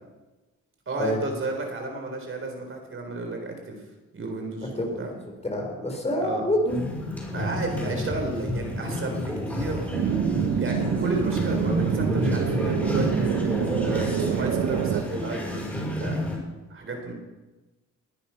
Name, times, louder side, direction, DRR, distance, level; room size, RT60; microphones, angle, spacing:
voice 1, 0.9-3.8 4.1-5.1 6.2-6.5 7.3-9.9 10.6-13.1 13.8-16.2 16.7-17.1, right 2 dB, 45° right, 3 dB, 4.0 m, -32 dB
voice 2, 5.4-6.8, left 1 dB, 20° left, 2 dB, 4.2 m, -26 dB
sound 1, 6.7-16.4, left 1 dB, 5° left, 6.6 m, -29 dB
sound 2, 9.9-15.0, right 9 dB, 75° right, 1.1 m, -26 dB
20.5 x 10.0 x 5.8 m, 1.1 s
cardioid pair, 90°, 30 cm